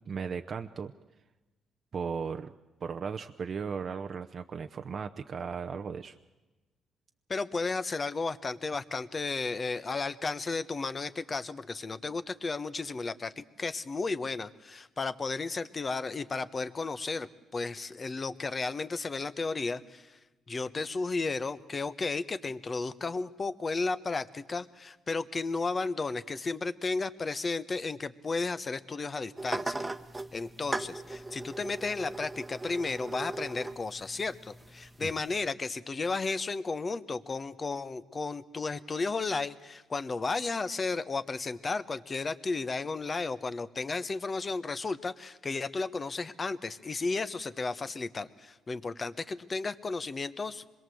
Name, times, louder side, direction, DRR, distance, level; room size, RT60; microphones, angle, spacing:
voice 1, 0.1-0.9 1.9-2.5 2.8-6.2 35.0-35.1, right 6 dB, 50° right, 6 dB, 0.8 m, -36 dB
voice 2, 7.3-20.2 20.5-29.9 30.3-50.6, left 3 dB, 35° left, 13 dB, 1.1 m, -33 dB
sound 1, 29.4-35.4, right 2 dB, 15° right, 1.3 m, -39 dB
26.0 x 22.0 x 7.8 m, 1.1 s
cardioid pair, 90°, 0 cm